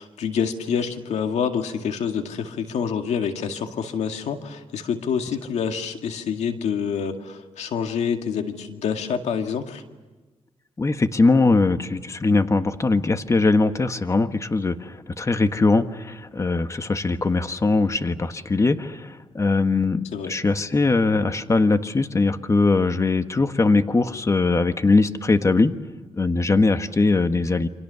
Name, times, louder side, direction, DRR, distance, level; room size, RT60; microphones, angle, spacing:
voice 1, 0.0-9.8 20.1-20.3, left 7 dB, 90° left, 5 dB, 2.1 m, -27 dB
voice 2, 10.8-25.7 26.1-27.7, left 3 dB, 25° left, 9 dB, 1.4 m, -21 dB
29.0 x 26.0 x 6.9 m, 1.2 s
cardioid pair, 95°, 11 cm